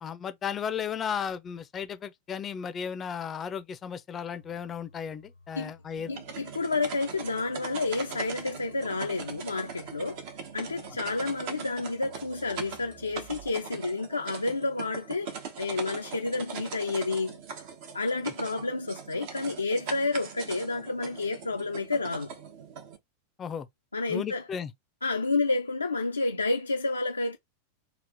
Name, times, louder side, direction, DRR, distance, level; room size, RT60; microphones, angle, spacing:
voice 1, 0.0-6.1 23.4-23.7 24.1-24.7, left 7 dB, 25° left, 0.5 m, -35 dB
sound 1, 4.3-13.6, equal, 85° right, 0.9 m, -56 dB
sound 2, 6.0-23.0, right 6 dB, 50° right, 0.7 m, -41 dB
voice 2, 6.1-10.2 10.5-17.4 17.9-22.3 23.9-24.4 25.0-27.4, left 3 dB, 80° left, 0.4 m, -30 dB
3.3 x 2.4 x 2.7 m
figure-of-eight pair, 90°, 0 cm